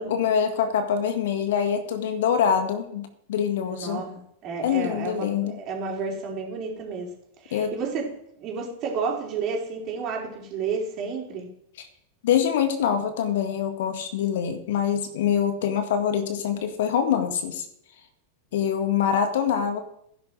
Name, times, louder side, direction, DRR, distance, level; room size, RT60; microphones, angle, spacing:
voice 1, 0.1-4.0 4.6-5.6 7.5-7.7 11.8-11.9 12.2-17.7 18.5-19.8, left 8 dB, 55° left, 8 dB, 1.9 m, -24 dB
voice 2, 3.6-7.1 7.4-8.1 8.4-11.5, right 5 dB, 35° right, -1 dB, 4.6 m, -31 dB
16.5 x 10.5 x 5.0 m, 0.73 s
figure-of-eight pair, 90°, 0 cm